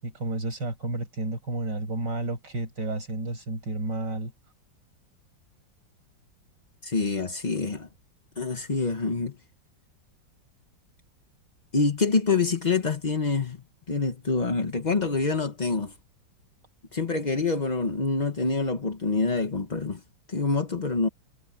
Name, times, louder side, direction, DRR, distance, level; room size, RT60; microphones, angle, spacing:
voice 1, 0.0-4.3, right 2 dB, 65° right, 6.7 m, -31 dB
voice 2, 6.8-7.9 8.4-9.3 11.7-15.9 16.9-20.0 20.3-21.1, left 4 dB, 30° left, 1.0 m, -26 dB
omnidirectional pair, 2.1 m